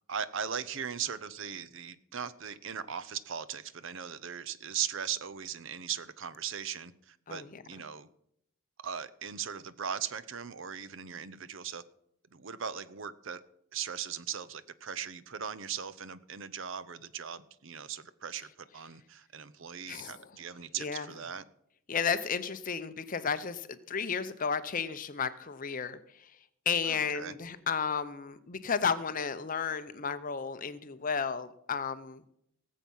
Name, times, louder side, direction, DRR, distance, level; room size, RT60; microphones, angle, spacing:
voice 1, 0.1-8.1 8.8-11.8 12.3-13.4 13.7-21.4 26.8-27.3, right 8 dB, 60° right, 14 dB, 0.6 m, -39 dB
voice 2, 7.3-7.6 19.9-20.2 20.8-21.1 21.9-26.0 26.7-32.2, left 6 dB, 40° left, 12 dB, 0.7 m, -33 dB
18.5 x 7.5 x 5.4 m, 0.74 s
head